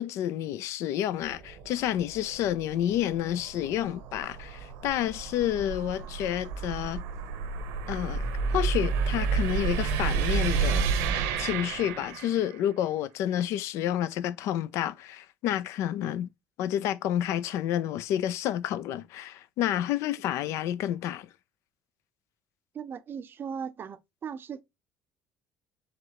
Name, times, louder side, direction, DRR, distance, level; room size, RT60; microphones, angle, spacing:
voice 1, 0.0-7.0 7.9-8.3 8.5-10.9 11.4-16.3 16.6-21.3, left 11 dB, 70° left, 0.4 m, -29 dB
sound 1, 1.2-12.6, right 5 dB, 80° right, 0.9 m, -31 dB
voice 2, 22.7-24.6, right 7 dB, 45° right, 0.6 m, -38 dB
4.7 x 3.3 x 2.9 m
supercardioid pair, 75°, 5 cm